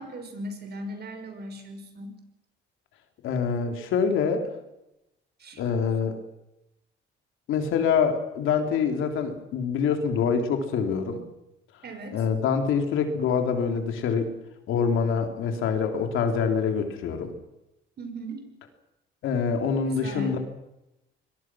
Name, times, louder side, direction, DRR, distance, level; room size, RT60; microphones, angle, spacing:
voice 1, 0.0-2.2 5.4-5.6 11.8-12.2 18.0-18.5 19.8-20.4, right 1 dB, 55° right, 7 dB, 5.6 m, -38 dB
voice 2, 3.2-4.5 5.6-6.2 7.5-11.2 12.1-14.3 14.7-17.3 19.2-20.4, left 6 dB, 85° left, 5 dB, 3.4 m, -25 dB
24.5 x 21.5 x 6.3 m, 0.91 s
cardioid pair, 90°, 20 cm